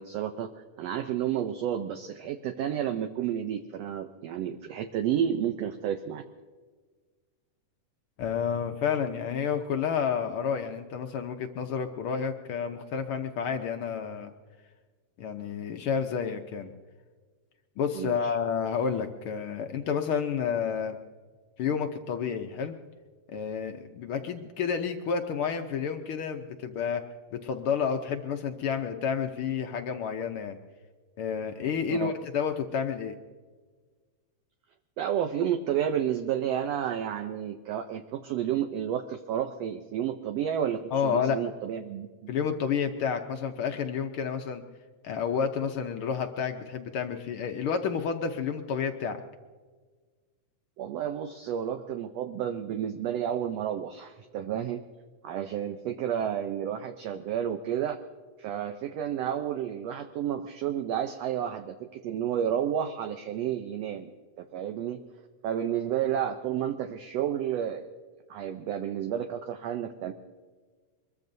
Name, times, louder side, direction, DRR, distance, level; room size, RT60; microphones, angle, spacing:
voice 1, 0.0-6.2 17.9-18.4 31.9-32.1 35.0-42.3 50.8-54.8 55.2-58.0 58.4-64.1 64.4-65.0 65.4-67.9 68.3-70.1, right 9 dB, 75° right, 7 dB, 1.6 m, -31 dB
voice 2, 8.2-14.3 15.2-16.7 17.8-21.0 21.6-22.7 23.3-27.0 27.3-30.6 31.2-33.1 40.9-41.4 42.3-44.6 45.0-49.2, left 7 dB, 75° left, 5 dB, 1.2 m, -30 dB
24.5 x 22.0 x 2.7 m, 1.5 s
omnidirectional pair, 3.4 m